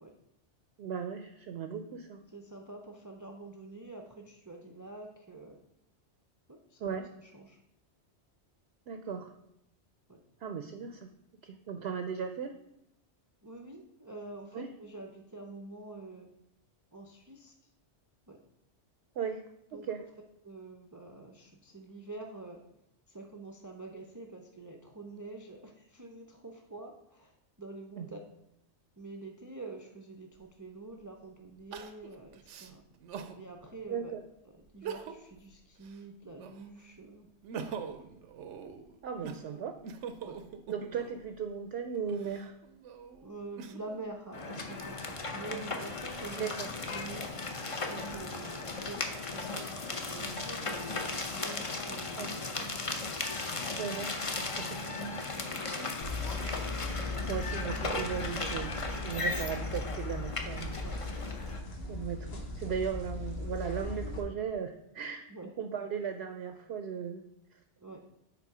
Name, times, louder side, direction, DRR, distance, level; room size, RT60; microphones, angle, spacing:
voice 1, 0.8-2.2 6.8-7.1 8.9-9.3 10.4-11.1 11.4-12.5 14.5-14.7 19.2-19.4 19.7-20.0 28.0-28.1 33.9-34.2 39.0-39.8 40.7-42.5 46.3-46.7 52.2-52.3 53.7-54.2 54.6-54.8 55.7-55.9 56.4-60.7 61.9-65.2 65.6-67.2, right 7 dB, 65° right, 7 dB, 0.8 m, -37 dB
voice 2, 2.3-5.6 6.5-7.6 10.1-10.2 13.4-16.3 16.9-17.5 18.3-18.4 19.7-19.9 20.4-22.6 23.1-28.2 29.0-32.8 33.4-34.1 34.7-37.3 40.2-40.4 43.2-46.4 46.7-47.3 47.9-53.1 54.6-54.7 55.4-55.6 60.8-61.0 65.3-65.5 67.8-68.0, right 2 dB, 25° right, 2 dB, 0.4 m, -46 dB
Crying sobbing, 30.4-30.5 31.7-33.4 33.9-34.0 34.7-35.4 35.8-36.8 37.2-41.3 42.0-44.0 44.6-45.4, right 6 dB, 90° right, 1.0 m, -43 dB
sound 1, 44.3-61.6, left 3 dB, 35° left, 0.7 m, -37 dB
sound 2, 56.0-64.2, left 2 dB, 60° left, 1.3 m, -38 dB
6.9 x 4.4 x 4.8 m, 0.81 s
omnidirectional pair, 1.2 m